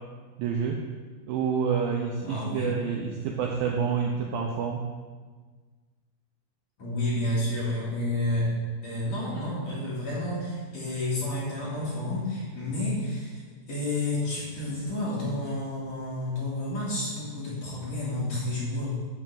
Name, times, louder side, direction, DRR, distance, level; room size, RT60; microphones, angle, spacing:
voice 1, 0.4-0.8 1.3-4.8, right 6 dB, 80° right, 1 dB, 2.1 m, -28 dB
voice 2, 2.2-2.7 6.8-8.5 8.8-13.4 13.7-18.9, left 1 dB, 45° left, -8 dB, 2.9 m, -30 dB
9.9 x 4.1 x 7.5 m, 1.4 s
omnidirectional pair, 4.8 m